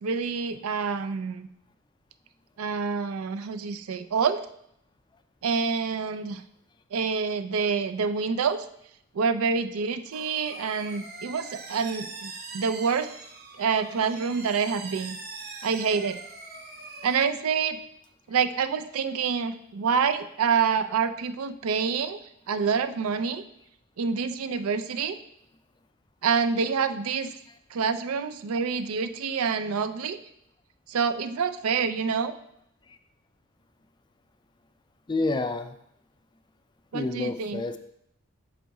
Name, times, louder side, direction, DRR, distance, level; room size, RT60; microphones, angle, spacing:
voice 1, 0.0-1.5 2.6-4.4 5.4-6.4 6.9-8.7 9.1-13.1 13.6-15.2 15.6-16.2 17.0-17.8 18.3-22.2 22.5-23.4 24.0-25.2 26.2-27.4 27.7-30.2 30.9-32.3 36.9-37.6, right 5 dB, 75° right, 10 dB, 0.4 m, -27 dB
sound 1, 10.1-17.2, right 3 dB, 45° right, 0.9 m, -42 dB
voice 2, 35.1-35.7 36.9-37.8, left 2 dB, 20° left, 9 dB, 0.3 m, -28 dB
6.2 x 4.0 x 4.7 m, 0.74 s
head